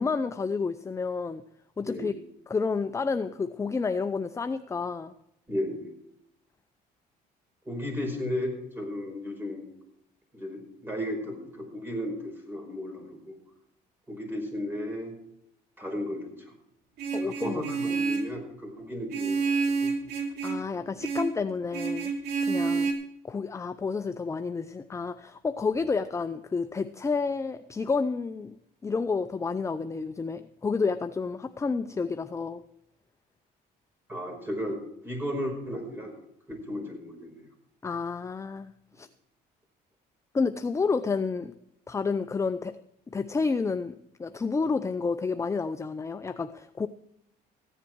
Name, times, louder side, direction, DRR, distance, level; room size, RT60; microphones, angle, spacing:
voice 1, 0.0-1.4 1.8-2.1 2.5-5.1 17.1-17.6 17.9-18.0 20.4-22.1 22.4-22.9 23.2-28.6 28.8-32.6 37.8-38.7 39.0-39.1 40.3-41.5 41.9-42.8 43.1-46.9, left 4 dB, 15° left, 10 dB, 0.5 m, -30 dB
voice 2, 1.8-2.1 5.5-5.9 7.7-9.7 10.3-13.4 14.1-15.1 15.8-16.3 17.2-19.9 34.1-36.2 36.5-37.5, left 1 dB, 10° right, 2 dB, 5.2 m, -34 dB
Vehicle horn car horn honking, 17.0-18.4 19.1-20.7 21.0-21.4 21.7-22.9, right 4 dB, 75° right, 2.7 m, -29 dB
15.0 x 10.0 x 4.6 m, 0.78 s
cardioid pair, 110°, 17 cm